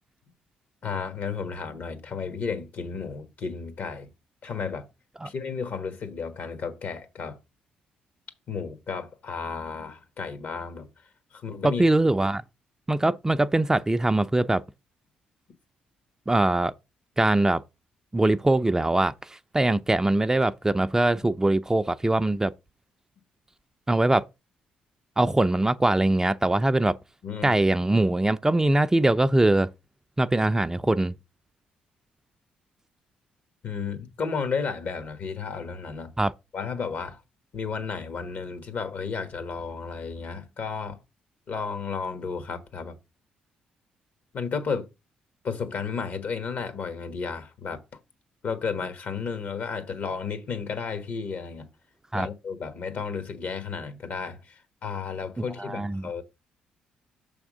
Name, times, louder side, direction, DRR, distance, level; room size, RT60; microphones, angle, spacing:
voice 1, 0.8-4.1 4.4-4.9 5.2-7.4 8.5-11.8 27.2-27.6 33.6-36.1 36.5-37.2 37.5-41.0 41.5-43.0 44.3-44.9 45.4-48.0 48.4-51.7 52.1-56.2, left 5 dB, 60° left, 1.4 m, -33 dB
voice 2, 11.6-12.4 12.9-14.6 16.3-16.7 17.2-17.6 18.1-22.5 23.9-24.2 25.2-27.0 27.4-29.7 30.2-31.1 36.2-36.3 52.1-52.3 55.6-56.1, right 2 dB, 15° right, 0.4 m, -22 dB
6.4 x 3.5 x 6.1 m
supercardioid pair, 60°, 3 cm